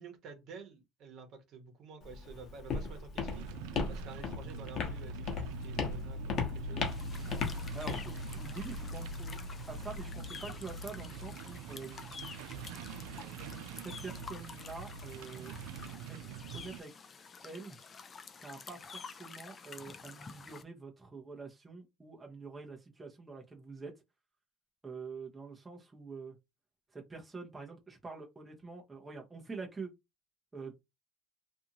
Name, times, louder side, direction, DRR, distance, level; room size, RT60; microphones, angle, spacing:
voice 1, 0.0-3.5 3.9-6.9, right 5 dB, 55° right, 1.0 m, -50 dB
Walk footsteps, 2.0-10.0, left 5 dB, 50° left, 1.0 m, -38 dB
sound 1, 3.3-16.8, right 2 dB, 75° right, 0.3 m, -43 dB
sound 2, 6.8-20.6, left 5 dB, 30° left, 0.4 m, -50 dB
voice 2, 7.7-9.4 9.7-12.1 13.8-15.5 16.1-16.2 16.5-16.9 17.4-17.8 18.3-23.9 24.8-26.3 26.9-29.9 30.5-30.7, right 4 dB, 15° right, 0.7 m, -46 dB
2.6 x 2.5 x 2.8 m
supercardioid pair, 110°, 0 cm